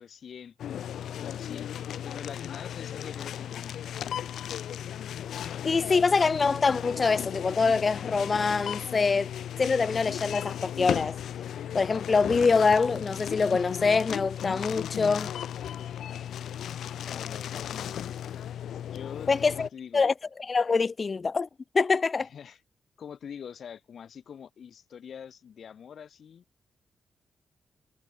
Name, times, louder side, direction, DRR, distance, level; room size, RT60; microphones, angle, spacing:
voice 1, 0.0-1.7 2.0-4.0 17.0-18.0 18.9-20.0 22.2-22.6 23.0-26.4, left 7 dB, 70° left, 5.7 m, -44 dB
sound 1, 0.6-19.7, left 10 dB, 90° left, 1.6 m, -36 dB
voice 2, 5.6-9.3 9.6-11.2 11.7-15.3 19.3-19.7 19.9-20.1 20.5-21.5 21.7-22.3, left 4 dB, 40° left, 0.6 m, -24 dB
cardioid pair, 90°, 0 cm